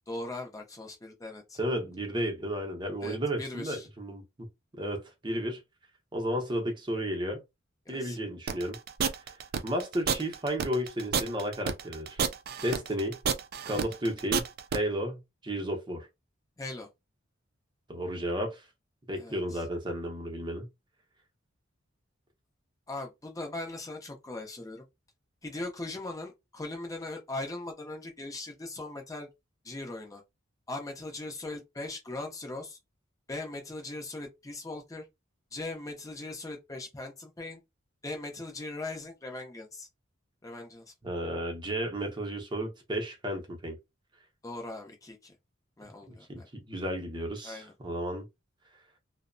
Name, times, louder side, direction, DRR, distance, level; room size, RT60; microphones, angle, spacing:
voice 1, 0.1-1.6 3.0-3.9 7.9-8.2 13.7-13.8 16.6-16.9 19.2-19.6 22.9-24.8 25.4-29.3 29.6-30.2 30.7-32.8 33.3-35.1 35.5-37.6 38.0-39.9 40.4-40.8 44.4-45.3 45.8-46.5 47.4-47.7, left 2 dB, 15° left, 0.6 m, -39 dB
voice 2, 1.6-4.2 4.8-5.6 6.1-7.4 7.9-8.8 9.6-12.2 12.6-13.2 13.6-14.5 14.7-16.1 17.9-18.6 19.1-20.7 41.0-43.8 46.1-48.2, equal, 20° right, 0.7 m, -33 dB
sound 1, 8.5-14.8, right 6 dB, 50° right, 0.3 m, -30 dB
2.7 x 2.0 x 2.5 m
head